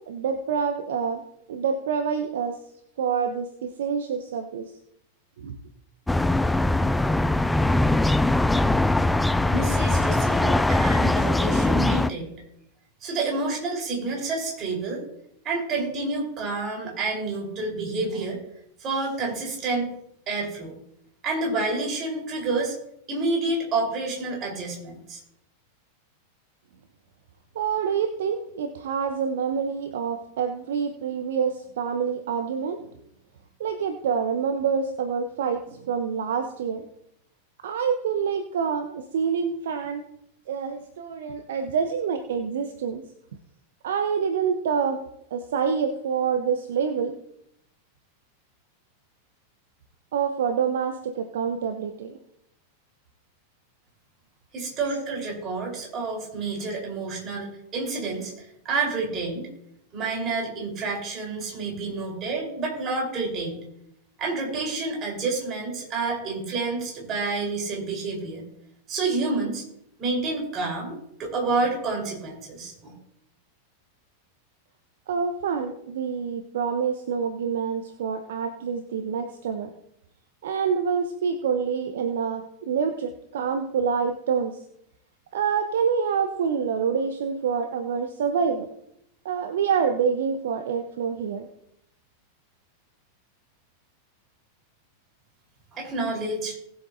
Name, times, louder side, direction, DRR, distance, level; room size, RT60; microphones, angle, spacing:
voice 1, 0.1-1.2 1.5-2.6 3.0-4.6 5.4-5.6 27.5-32.8 33.6-36.9 37.6-40.0 40.5-43.0 43.8-45.0 45.3-47.2 50.1-52.2 75.1-79.7 80.4-84.6 85.3-88.7 89.2-91.5, right 6 dB, 60° right, 7 dB, 1.0 m, -27 dB
sound 1, 6.1-12.1, left 2 dB, 5° left, 0.3 m, -21 dB
voice 2, 9.5-12.3 13.0-15.1 15.4-18.4 18.8-19.9 20.3-20.7 21.2-22.7 23.1-25.2 54.5-58.3 58.6-59.5 59.9-63.6 64.2-68.4 68.9-69.6 70.0-72.9 95.7-96.6, right 3 dB, 30° right, -1 dB, 4.5 m, -29 dB
19.5 x 7.9 x 2.8 m, 0.76 s
figure-of-eight pair, 90°, 0 cm